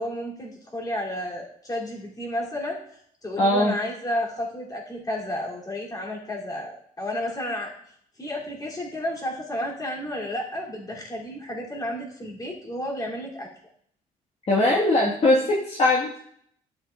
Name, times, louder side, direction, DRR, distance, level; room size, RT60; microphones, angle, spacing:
voice 1, 0.0-7.7 8.2-13.5, left 1 dB, 25° left, -3 dB, 2.8 m, -32 dB
voice 2, 3.4-3.7 14.5-16.3, left 2 dB, 40° left, -4 dB, 1.5 m, -21 dB
12.0 x 7.9 x 2.4 m, 0.66 s
cardioid pair, 100°, 16 cm